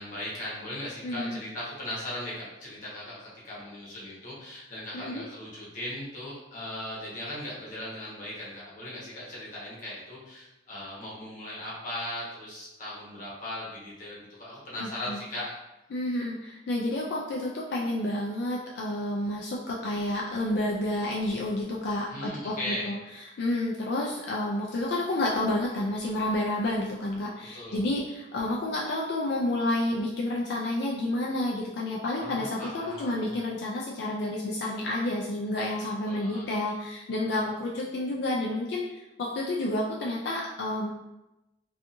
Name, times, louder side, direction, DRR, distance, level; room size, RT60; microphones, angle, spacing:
voice 1, 0.0-15.5 22.1-22.9 27.5-27.8 32.2-33.3 36.0-36.5 37.3-37.4, left 1 dB, 45° left, -7 dB, 1.0 m, -38 dB
voice 2, 1.0-1.4 4.9-5.2 14.8-15.2 15.9-40.9, left 1 dB, 65° left, -3 dB, 0.3 m, -30 dB
2.6 x 2.4 x 2.5 m, 0.97 s
head